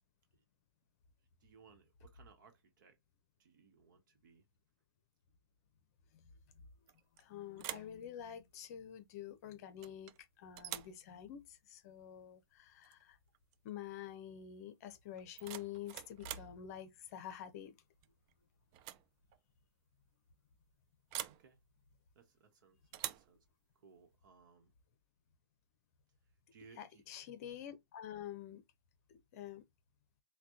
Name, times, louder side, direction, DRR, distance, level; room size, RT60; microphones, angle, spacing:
voice 1, 1.4-3.0 3.4-4.4 21.3-21.6 22.1-22.8 23.1-23.4 23.7-24.7 26.2-27.0, right 5 dB, 50° right, 1.1 m, -63 dB
sound 1, 6.9-7.2 7.6-8.0 9.8-10.2 10.6-11.0 12.8-13.0 13.3-13.7 15.1-16.6 18.0-18.3 18.7-19.1 19.3-19.4 21.1-21.5 22.9-23.3, right 13 dB, 25° right, 0.3 m, -45 dB
voice 2, 7.2-10.1 10.4-13.2 13.6-17.7 26.8-28.6 29.1-29.6, left 10 dB, 40° left, 0.7 m, -48 dB
5.9 x 2.3 x 2.8 m
hypercardioid pair, 125°, 13 cm